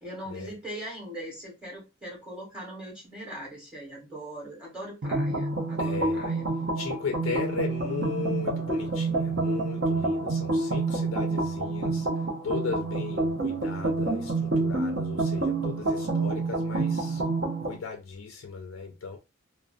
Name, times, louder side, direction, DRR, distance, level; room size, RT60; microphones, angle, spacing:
voice 1, 0.0-6.4, right 1 dB, 5° right, 1.1 m, -40 dB
sound 1, 5.0-17.8, right 3 dB, 55° right, 0.5 m, -28 dB
voice 2, 5.8-6.3 6.8-12.1 12.4-17.2 17.6-19.2, left 5 dB, 85° left, 0.4 m, -36 dB
2.5 x 2.0 x 2.4 m
head